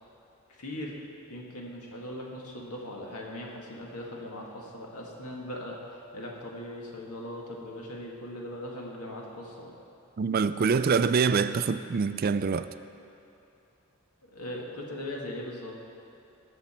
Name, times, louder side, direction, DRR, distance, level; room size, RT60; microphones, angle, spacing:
voice 1, 0.6-0.9 1.3-9.7 14.2-15.8, left 1 dB, 85° left, -2 dB, 2.0 m, -39 dB
voice 2, 10.2-12.7, right 5 dB, 40° right, 12 dB, 0.3 m, -25 dB
19.0 x 7.1 x 4.4 m, 2.8 s
head